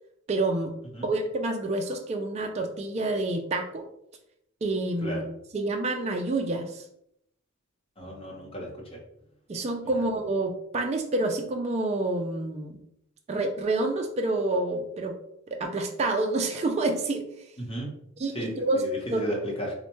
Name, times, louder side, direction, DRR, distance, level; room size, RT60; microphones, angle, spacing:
voice 1, 0.3-0.7 1.0-3.9 4.6-5.2 5.5-6.8 9.5-12.8 13.3-15.2 15.5-17.3 18.2-19.4, right 2 dB, 30° right, 3 dB, 0.3 m, -28 dB
voice 2, 8.0-9.0 9.9-10.0 17.6-17.9 18.3-19.7, equal, 25° left, -2 dB, 0.8 m, -34 dB
4.3 x 2.1 x 2.9 m, 0.74 s
head